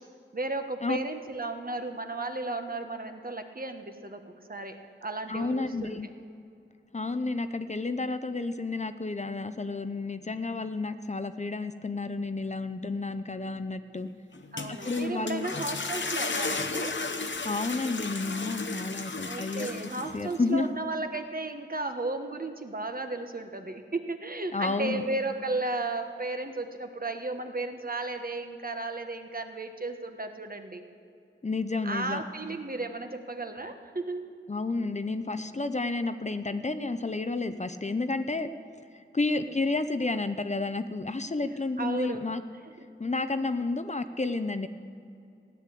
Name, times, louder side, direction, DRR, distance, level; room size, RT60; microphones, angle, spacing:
voice 1, 0.3-4.2 4.5-6.0 14.5-17.0 19.2-30.8 31.8-34.3 39.2-39.6 41.8-42.2 42.8-42.9, right 2 dB, 45° right, 6 dB, 1.3 m, -34 dB
voice 2, 5.3-6.1 6.9-14.1 14.7-15.5 17.4-20.7 24.5-25.0 31.4-32.2 34.5-38.5 38.9-42.4 43.0-44.7, left 3 dB, 35° left, 10 dB, 0.6 m, -31 dB
sound 1, 14.3-20.4, left 3 dB, 70° left, 0.9 m, -34 dB
15.5 x 10.0 x 8.4 m, 2.5 s
wide cardioid pair, 70°, 20 cm